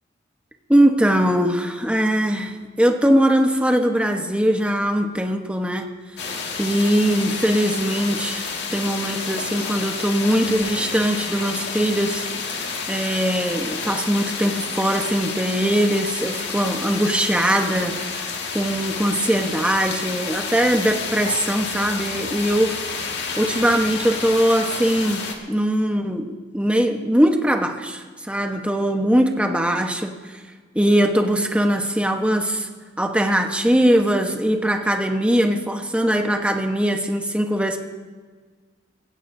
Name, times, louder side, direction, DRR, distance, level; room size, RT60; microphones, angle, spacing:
voice 1, 0.7-5.9 6.6-18.2 18.5-30.2 30.7-32.7 33.0-37.8, equal, 5° right, 3 dB, 1.2 m, -21 dB
sound 1, 6.2-25.3, left 5 dB, 60° left, 2.0 m, -30 dB
24.0 x 16.0 x 2.8 m, 1.5 s
head